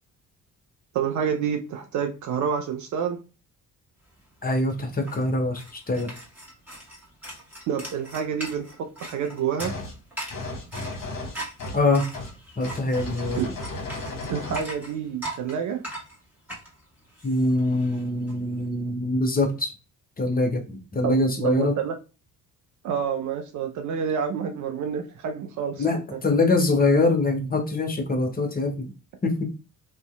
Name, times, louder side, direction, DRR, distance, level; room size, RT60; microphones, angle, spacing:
voice 1, 0.9-3.2 7.7-8.7 9.0-9.7 13.4-13.5 14.3-15.8 21.0-21.9 22.8-25.9, right 7 dB, 40° right, 4 dB, 0.5 m, -28 dB
sound 1, 4.2-4.3 4.5-18.3, right 1 dB, 5° right, 1.4 m, -40 dB
voice 2, 4.4-6.1 11.7-12.0 12.6-13.4 17.2-19.7 20.2-21.7 25.8-28.9 29.2-29.4, left 2 dB, 20° left, 2 dB, 0.6 m, -24 dB
sound 2, 9.6-10.0 10.3-11.9 12.1-12.3 12.6-14.7, left 2 dB, 45° left, 0.9 m, -34 dB
2.5 x 2.1 x 2.2 m, 0.32 s
figure-of-eight pair, 45°, 47 cm